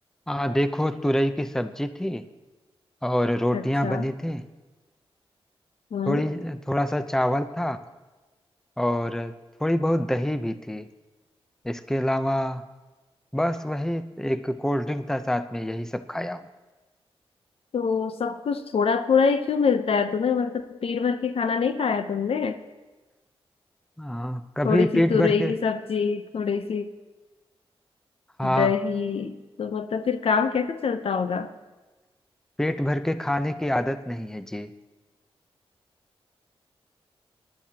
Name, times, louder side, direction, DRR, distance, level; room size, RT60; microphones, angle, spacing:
voice 1, 0.3-2.2 3.0-4.5 6.1-7.8 8.8-9.3 9.6-10.9 11.6-12.6 13.3-16.5 24.0-25.5 28.4-28.7 32.6-34.7, equal, 5° left, 11 dB, 0.6 m, -26 dB
voice 2, 3.5-4.1 5.9-6.2 17.7-22.6 24.6-26.9 28.4-31.5, left 6 dB, 65° left, 10 dB, 0.7 m, -25 dB
19.5 x 12.0 x 2.9 m, 1.2 s
cardioid pair, 60°, 10 cm